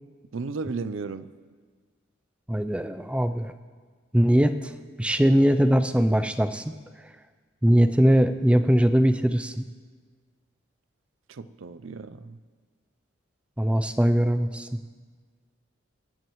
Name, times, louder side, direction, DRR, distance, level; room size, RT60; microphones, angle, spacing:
voice 1, 0.3-1.3 11.3-12.4, right 4 dB, 75° right, 14 dB, 0.5 m, -34 dB
voice 2, 2.5-3.5 4.1-4.7 5.0-6.6 7.6-9.6 13.6-14.7, equal, 5° right, 9 dB, 0.4 m, -21 dB
22.5 x 10.5 x 3.1 m, 1.6 s
head